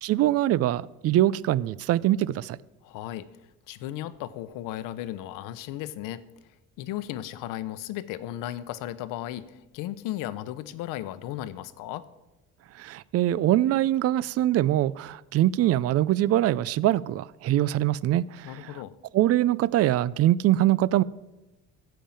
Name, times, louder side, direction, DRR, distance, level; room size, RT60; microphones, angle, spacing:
voice 1, 0.0-2.6 12.8-18.8 19.1-21.0, right 14 dB, 50° right, 0.5 m, -23 dB
voice 2, 2.8-3.3 3.7-6.2 6.8-12.1 18.4-18.9, left 13 dB, 90° left, 0.8 m, -35 dB
15.0 x 5.6 x 8.7 m
cardioid pair, 130°, 32 cm